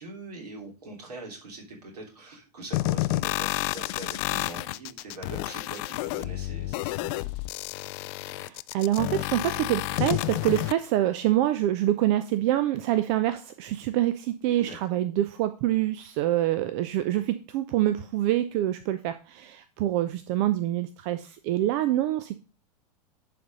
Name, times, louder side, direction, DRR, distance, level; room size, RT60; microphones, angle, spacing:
voice 1, 0.0-7.3 14.6-15.0, right 2 dB, 70° right, 0 dB, 3.3 m, -43 dB
sound 1, 2.7-10.7, left 20 dB, 40° left, 0.4 m, -30 dB
voice 2, 8.3-22.4, right 13 dB, 45° right, 12 dB, 0.7 m, -26 dB
11.0 x 4.2 x 5.1 m, 0.34 s
figure-of-eight pair, 95°, 21 cm